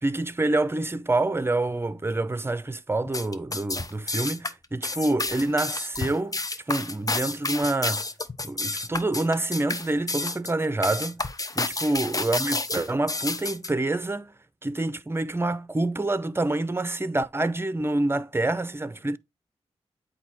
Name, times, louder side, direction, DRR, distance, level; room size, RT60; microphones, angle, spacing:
voice 1, 0.0-6.4 6.7-8.0 8.4-11.2 11.5-14.3 14.6-19.2, right 2 dB, 20° right, 0.7 m, -27 dB
sound 1, 3.1-13.7, left 2 dB, 30° left, 0.8 m, -30 dB
8.3 x 2.8 x 4.3 m
supercardioid pair, 40°, 12 cm